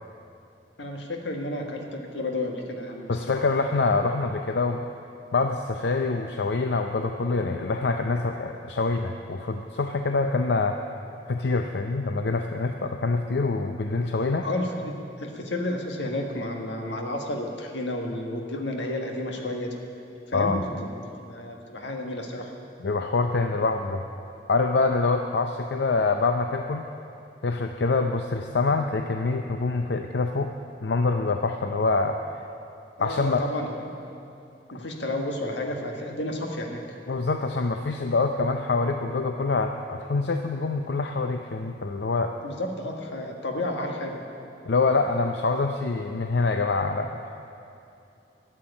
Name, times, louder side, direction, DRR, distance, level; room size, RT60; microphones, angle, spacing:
voice 1, 0.8-3.2 14.4-19.7 20.3-20.9 21.3-22.5 33.0-33.9 34.7-36.8 42.4-44.2, left 1 dB, 85° left, 2 dB, 1.7 m, -31 dB
voice 2, 3.1-4.8 5.3-10.8 11.3-14.5 20.3-20.6 22.8-24.0 24.5-26.9 27.4-30.5 30.8-32.4 33.0-33.5 37.1-42.4 44.7-47.3, left 3 dB, 65° left, 5 dB, 0.5 m, -25 dB
12.5 x 7.8 x 9.9 m, 2.7 s
head